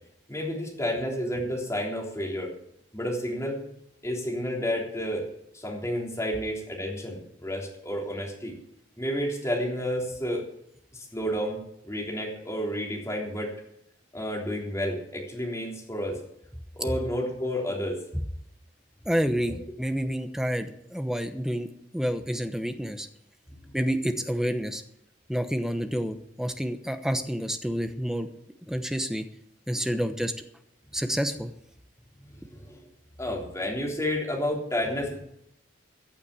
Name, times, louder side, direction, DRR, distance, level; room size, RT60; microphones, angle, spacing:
voice 1, 0.3-2.5 2.9-3.6 4.0-5.3 5.5-8.5 9.0-10.4 10.9-13.5 14.1-16.2 16.8-18.0 19.5-19.6 23.6-23.8 29.8-29.9 32.2-32.9 33.2-35.2, equal, 15° left, -2 dB, 3.5 m, -31 dB
voice 2, 19.0-23.1 23.7-24.8 25.3-28.3 28.7-29.3 29.7-30.3 30.9-31.5, equal, 5° right, 7 dB, 0.9 m, -29 dB
14.5 x 7.2 x 8.5 m, 0.74 s
head